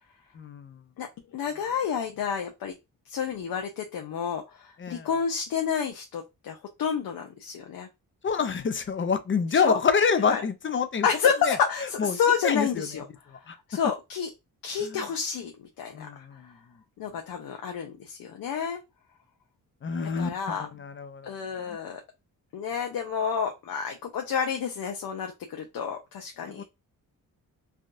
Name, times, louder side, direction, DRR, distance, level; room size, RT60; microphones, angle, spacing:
voice 1, 0.3-0.8 4.8-5.1 8.2-11.1 11.4-11.6 12.0-13.0 13.5-13.6 14.8-15.1 15.9-16.6 19.8-21.3 21.6-21.8 26.5-26.6, left 5 dB, 35° left, 0.5 m, -27 dB
voice 2, 1.3-2.7 3.1-7.9 9.6-9.8 10.3-10.4 11.0-13.1 13.7-14.3 14.6-16.2 17.0-18.8 20.2-20.7 21.3-22.0 22.5-26.6, left 7 dB, 85° left, 0.6 m, -29 dB
3.4 x 2.3 x 2.6 m
cardioid pair, 80°, 35 cm